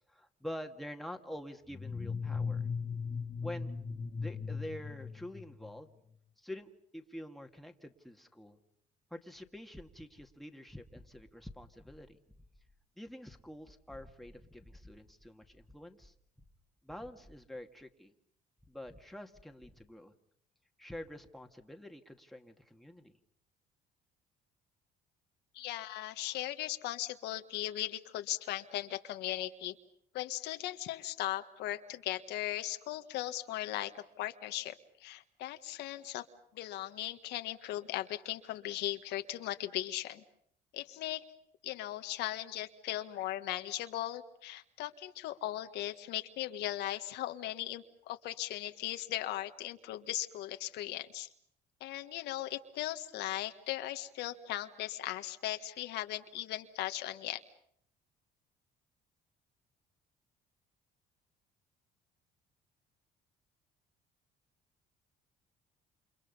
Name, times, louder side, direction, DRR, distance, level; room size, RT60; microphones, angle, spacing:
voice 1, 0.1-2.7 3.4-3.7 4.2-5.9 6.4-8.6 9.1-12.2 13.0-16.1 16.8-18.1 18.7-20.1 20.8-23.2, left 1 dB, ahead, 4 dB, 2.2 m, -47 dB
sound 1, 1.7-5.8, left 5 dB, 25° left, 1.6 m, -38 dB
voice 2, 25.5-29.7 30.1-34.7 35.0-36.2 36.5-40.2 40.7-41.2 41.6-51.3 51.8-57.4, left 14 dB, 85° left, 8 dB, 1.6 m, -38 dB
29.0 x 28.5 x 5.5 m, 0.69 s
cardioid pair, 110°, 17 cm